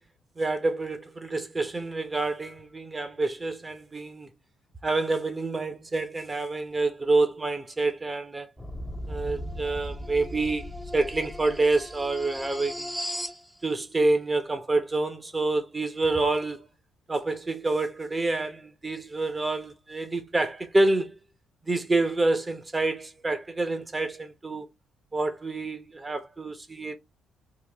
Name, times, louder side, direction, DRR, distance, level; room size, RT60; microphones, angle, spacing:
voice 1, 0.4-4.3 4.8-8.5 9.1-12.9 13.6-16.7 17.1-21.2 21.6-24.7 25.1-27.0, right 2 dB, 25° right, 0.9 m, -27 dB
sound 1, 8.6-13.4, equal, 5° left, 0.7 m, -37 dB
3.7 x 2.4 x 3.4 m
cardioid pair, 90°, 0 cm